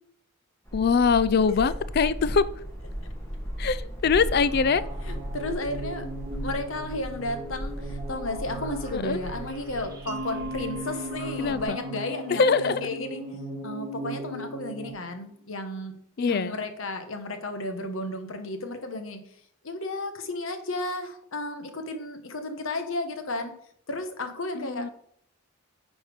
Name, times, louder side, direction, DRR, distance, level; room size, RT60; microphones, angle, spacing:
voice 1, 0.7-2.4 3.6-4.8 8.9-9.2 11.4-11.8 12.3-12.8 16.2-16.6 24.5-24.9, left 5 dB, 50° left, 16 dB, 0.4 m, -23 dB
sound 1, 0.7-11.7, equal, 15° left, 1.4 m, -37 dB
sound 2, 4.0-14.9, right 2 dB, 20° right, 1.5 m, -39 dB
voice 2, 5.0-6.1 6.4-13.2 13.6-15.9 16.2-19.2 19.6-23.5 23.9-24.9, left 2 dB, 75° left, 7 dB, 1.1 m, -33 dB
Mallet percussion, 10.1-14.8, equal, 50° right, 0.6 m, -39 dB
9.6 x 4.3 x 5.1 m, 0.68 s
head